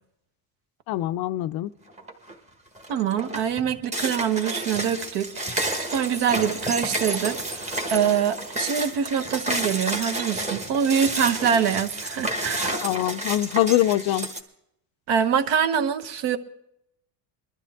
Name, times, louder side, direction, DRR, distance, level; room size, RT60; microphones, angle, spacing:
voice 1, 0.9-1.7 12.8-14.3, left 14 dB, 50° left, 13 dB, 0.5 m, -23 dB
sound 1, 2.0-2.3 2.8-14.4, right 1 dB, 15° right, 1.2 m, -30 dB
voice 2, 2.9-12.8 15.1-16.4, right 8 dB, 65° right, 11 dB, 1.2 m, -25 dB
22.0 x 12.5 x 3.5 m, 0.77 s
cardioid pair, 155°, 46 cm